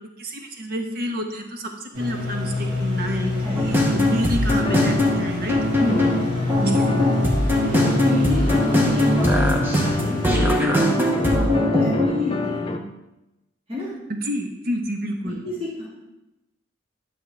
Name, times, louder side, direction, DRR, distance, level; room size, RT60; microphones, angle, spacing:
voice 1, 0.2-5.6 14.1-15.4, equal, 50° right, 3 dB, 1.1 m, -29 dB
sound 1, 1.9-10.2, left 1 dB, 80° right, 3.1 m, -27 dB
sound 2, 3.6-12.1, left 1 dB, 10° right, 0.9 m, -21 dB
sound 3, 4.6-12.8, left 2 dB, 25° left, 0.5 m, -29 dB
voice 2, 7.3-12.6 13.7-13.9 15.2-15.9, left 2 dB, 30° right, -8 dB, 2.5 m, -28 dB
10.5 x 6.3 x 3.4 m, 0.96 s
head